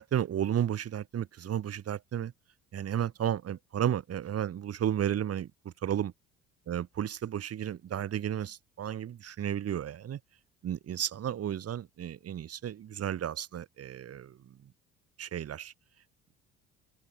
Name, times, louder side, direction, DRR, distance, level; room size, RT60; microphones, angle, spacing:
voice 1, 0.0-2.3 2.7-6.1 6.7-10.2 10.6-14.4 15.2-15.7, right 10 dB, 40° right, 2.6 m, -33 dB
figure-of-eight pair, 55°, 36 cm